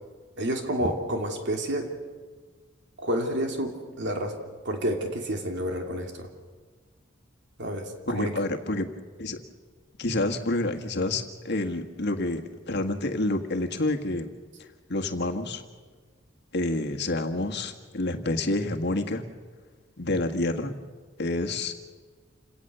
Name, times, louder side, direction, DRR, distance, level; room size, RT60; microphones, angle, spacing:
voice 1, 0.4-1.9 3.0-6.3 7.6-8.4, right 1 dB, 65° right, 3 dB, 3.0 m, -30 dB
voice 2, 8.1-8.9 9.2-9.4 10.0-14.3 14.9-15.6 16.5-19.2 20.0-20.7 21.2-21.7, left 2 dB, 60° left, 5 dB, 1.7 m, -28 dB
28.5 x 18.0 x 6.9 m, 1.5 s
head